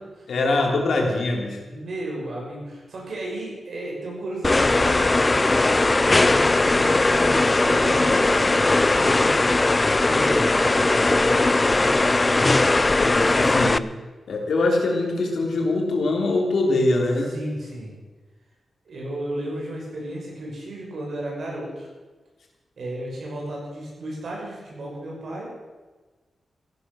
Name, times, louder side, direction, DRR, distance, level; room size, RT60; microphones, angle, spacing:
voice 1, 0.3-1.6 12.9-13.8 14.3-17.3, left 2 dB, 75° left, 1 dB, 3.2 m, -23 dB
voice 2, 1.6-5.5 6.2-9.7 10.0-11.5 17.3-17.9 18.9-21.9 22.8-25.5, right 1 dB, 65° right, -3 dB, 6.2 m, -34 dB
sound 1, 4.4-13.8, left 2 dB, 20° left, 0.4 m, -19 dB
14.5 x 11.0 x 6.4 m, 1.3 s
wide cardioid pair, 130°, 0 cm